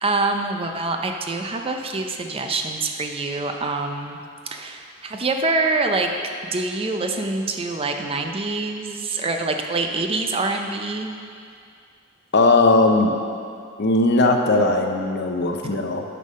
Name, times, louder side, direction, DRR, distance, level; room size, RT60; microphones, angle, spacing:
voice 1, 0.0-4.2 4.5-6.1 6.5-11.2, right 3 dB, 25° right, 4 dB, 0.5 m, -25 dB
voice 2, 12.3-13.1 13.8-16.0, left 2 dB, 50° left, 4 dB, 0.7 m, -18 dB
9.9 x 5.5 x 5.3 m, 2.4 s
head